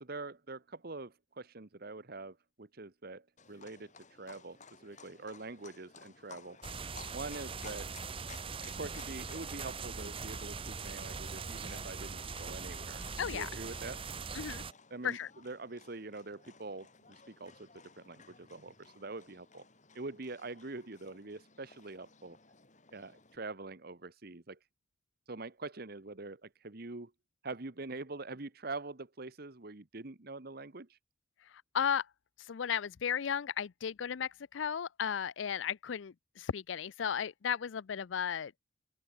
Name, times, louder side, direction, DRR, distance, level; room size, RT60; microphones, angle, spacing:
voice 1, 0.0-6.6 7.1-7.9 8.7-14.0 14.9-19.6 19.9-22.4 22.9-24.6 25.3-27.1 27.4-31.0, right 3 dB, 55° right, 1.3 m, -44 dB
Livestock farm animals working animals, 3.4-23.4, left 5 dB, 40° left, 4.2 m, -57 dB
sound 1, 6.6-14.7, right 5 dB, 30° right, 0.8 m, -41 dB
voice 2, 13.2-13.5 14.3-14.6 15.0-15.3 31.7-32.1 32.5-38.5, left 8 dB, 80° left, 0.5 m, -34 dB
open air
head